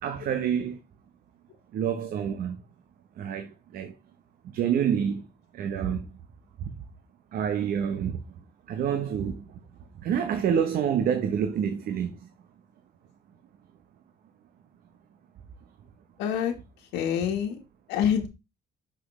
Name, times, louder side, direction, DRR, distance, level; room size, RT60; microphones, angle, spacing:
voice 1, 0.0-0.8 1.7-2.6 3.2-3.9 4.4-5.3 5.5-6.2 6.6-6.8 7.3-8.3 8.7-9.6 10.0-12.3, right 8 dB, 60° right, 0.9 m, -28 dB
voice 2, 16.2-16.5 16.9-17.6 17.9-18.3, left 8 dB, 90° left, 1.3 m, -26 dB
6.0 x 5.9 x 3.1 m
cardioid pair, 110°, 17 cm